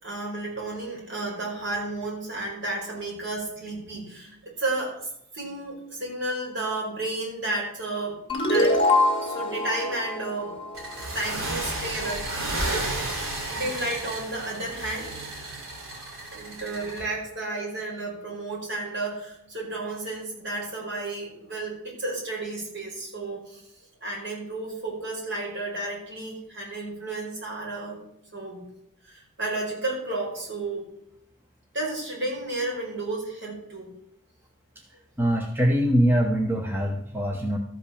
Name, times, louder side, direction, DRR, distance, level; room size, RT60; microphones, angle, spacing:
voice 1, 0.0-5.0 5.3-8.2 8.5-8.8 9.2-10.6 11.1-12.9 13.5-15.1 16.3-23.6 24.0-28.0 28.3-28.6 29.0-30.9 31.7-33.9, right 2 dB, 55° right, -3 dB, 4.8 m, -32 dB
sound 1, 8.3-11.5, left 2 dB, 25° left, 1.7 m, -25 dB
sound 2, 10.7-17.0, right 2 dB, 70° right, 3.3 m, -32 dB
voice 2, 35.2-37.6, equal, 10° right, 2 dB, 0.9 m, -23 dB
13.5 x 5.2 x 7.0 m, 0.75 s
head